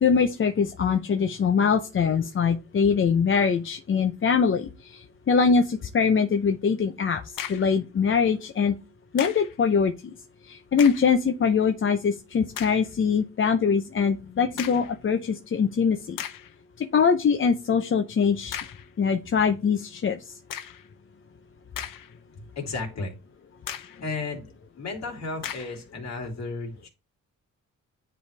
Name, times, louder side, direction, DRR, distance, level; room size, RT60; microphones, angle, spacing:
voice 1, 0.0-7.2 7.5-8.7 9.1-10.1 10.5-16.2 16.8-18.6 19.0-20.2, left 6 dB, 40° left, 6 dB, 0.6 m, -23 dB
sound 1, 7.4-7.8 9.2-9.6 10.7-11.2 11.8-11.9 12.5-12.9 14.6-15.0 15.6-15.7 16.2-16.6 18.5-18.9 20.5-20.9 21.5-22.3 22.7-22.8 23.7-24.0 25.4-25.8, left 10 dB, 80° left, 0.7 m, -37 dB
voice 2, 22.6-23.2 24.0-24.5 24.8-26.9, left 3 dB, 55° left, 1 dB, 2.5 m, -33 dB
9.9 x 3.3 x 3.3 m, 0.30 s
cardioid pair, 85°, 32 cm